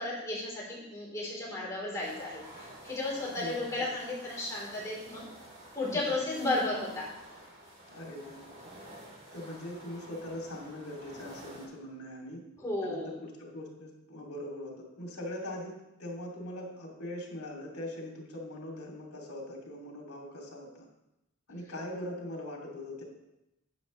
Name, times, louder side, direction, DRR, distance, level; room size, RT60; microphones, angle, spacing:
voice 1, 0.0-5.2 5.7-7.1 12.6-13.1, left 2 dB, 15° left, -6 dB, 3.6 m, -34 dB
sound 1, 1.9-11.6, right 1 dB, 45° right, 2.7 m, -50 dB
voice 2, 3.4-3.9 5.9-6.0 7.9-8.4 9.3-12.4 12.8-20.8 21.5-23.0, left 1 dB, 80° left, -1 dB, 2.7 m, -41 dB
12.0 x 8.6 x 3.2 m, 0.89 s
head